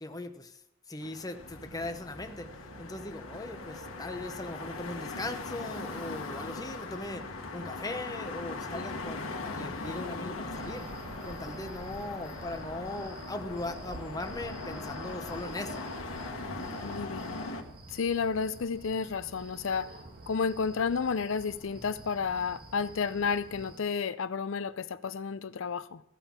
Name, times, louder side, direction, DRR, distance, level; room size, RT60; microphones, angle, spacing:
voice 1, 0.0-0.6 0.9-2.5 2.8-7.3 7.5-10.9 11.2-15.8, left 2 dB, 20° left, 0.8 m, -39 dB
sound 1, 1.0-17.6, left 3 dB, 85° left, 1.3 m, -40 dB
sound 2, 1.4-17.6, right 2 dB, 25° right, 0.8 m, -50 dB
sound 3, 10.5-23.8, right 1 dB, 50° right, 1.7 m, -48 dB
voice 2, 16.8-17.4 17.9-19.9 20.3-26.0, left 5 dB, 70° left, 0.5 m, -31 dB
14.5 x 5.5 x 7.3 m
head